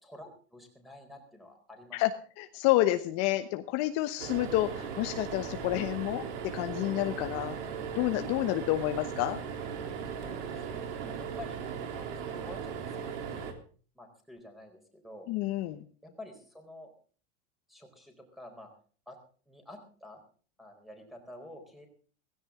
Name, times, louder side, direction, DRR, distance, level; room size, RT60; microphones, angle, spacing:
voice 1, 0.0-2.0 8.4-8.5 10.1-11.6 11.9-13.4 13.9-15.3 16.0-16.9 17.7-18.7 19.1-19.2 19.5-20.2 20.6-21.9, left 1 dB, ahead, 5 dB, 4.2 m, -49 dB
voice 2, 2.4-7.6 7.9-9.4 15.3-15.8, left 16 dB, 45° left, 8 dB, 1.1 m, -29 dB
sound 1, 4.2-13.5, right 7 dB, 80° right, 3.4 m, -38 dB
17.0 x 16.0 x 3.7 m, 0.41 s
supercardioid pair, 145°, 35 cm